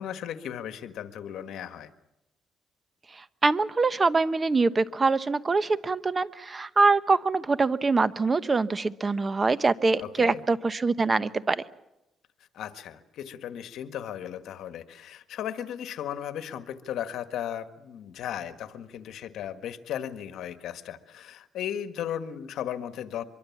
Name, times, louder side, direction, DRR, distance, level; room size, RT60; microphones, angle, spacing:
voice 1, 0.0-1.9 10.0-10.4 12.5-23.2, left 10 dB, 75° left, 9 dB, 1.6 m, -36 dB
voice 2, 3.1-11.6, right 3 dB, 30° right, 14 dB, 1.1 m, -24 dB
24.5 x 23.0 x 7.3 m, 0.92 s
cardioid pair, 90°, 0 cm